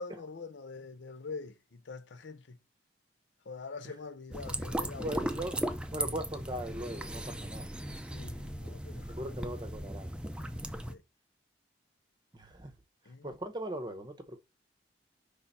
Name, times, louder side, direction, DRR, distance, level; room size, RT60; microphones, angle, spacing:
voice 1, 0.0-2.6 3.5-5.3 8.1-9.3 10.9-11.0 13.1-13.3, left 4 dB, 75° left, 0.6 m, -44 dB
sound 1, 4.3-10.9, right 1 dB, 5° right, 0.5 m, -37 dB
voice 2, 5.0-5.6 5.9-7.7 9.1-10.1 12.3-12.7 13.2-14.4, right 1 dB, 20° right, 0.9 m, -39 dB
5.6 x 3.5 x 5.4 m
head